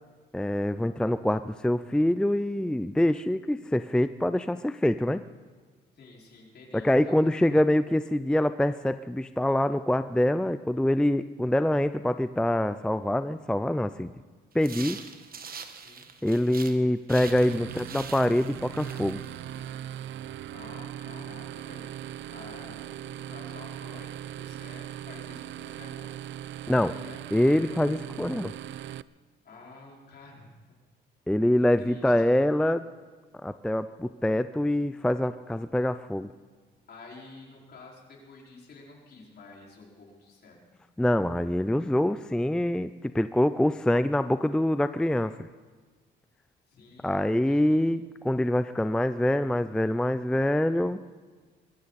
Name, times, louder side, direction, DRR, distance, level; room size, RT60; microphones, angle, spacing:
voice 1, 0.3-5.2 6.7-14.1 14.5-15.0 16.2-19.2 26.7-27.0 27.3-28.5 31.3-32.8 33.4-36.3 41.0-45.3 47.0-51.0, left 1 dB, 5° left, 12 dB, 0.4 m, -25 dB
voice 2, 5.9-7.3 15.7-16.1 20.5-26.1 27.0-27.2 29.4-30.5 31.6-32.3 36.9-40.6 46.7-47.8, left 3 dB, 55° left, -2 dB, 5.1 m, -50 dB
sound 1, 14.6-16.8 17.1-19.7, right 6 dB, 50° right, 1.4 m, -43 dB
sound 2, 17.1-29.0, right 11 dB, 70° right, 0.4 m, -39 dB
22.0 x 15.0 x 4.2 m, 1.4 s
cardioid pair, 90°, 20 cm